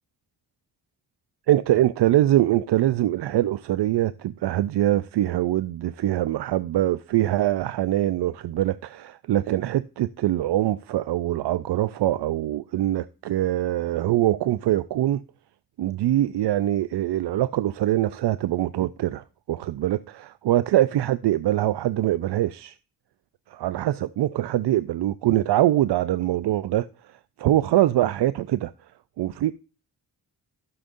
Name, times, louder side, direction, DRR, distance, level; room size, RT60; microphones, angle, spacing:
voice 1, 1.5-15.2 15.8-22.8 23.5-26.9 27.4-28.7 29.2-29.5, right 13 dB, 75° right, 0.5 m, -23 dB
12.5 x 6.8 x 2.6 m
cardioid pair, 55°, 41 cm